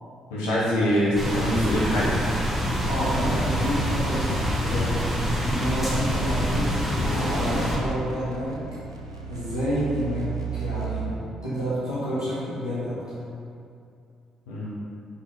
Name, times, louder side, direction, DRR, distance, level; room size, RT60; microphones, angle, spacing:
voice 1, 0.3-2.2 14.5-14.7, equal, 70° left, -8 dB, 1.4 m, -24 dB
sound 1, 0.8-11.3, right 8 dB, 85° right, 0.4 m, -37 dB
sound 2, 1.2-7.8, equal, 5° right, 1.5 m, -26 dB
voice 2, 2.9-5.2 5.5-8.6 9.3-13.1, equal, 90° left, -14 dB, 1.3 m, -29 dB
6.2 x 5.6 x 3.9 m, 2.5 s
figure-of-eight pair, 40°, 2 cm